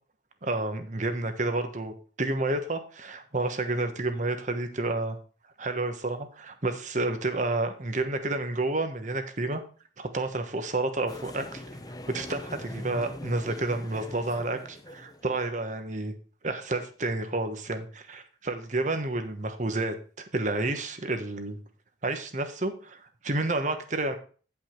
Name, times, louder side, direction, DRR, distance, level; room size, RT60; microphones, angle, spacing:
voice 1, 0.4-5.2 5.6-9.6 10.0-11.6 12.1-16.1 16.4-20.0 20.3-21.6 22.0-24.2, right 2 dB, 45° right, 7 dB, 1.2 m, -30 dB
sound 1, 11.1-15.4, left 1 dB, 20° left, 0.7 m, -42 dB
9.9 x 5.6 x 4.5 m, 0.39 s
head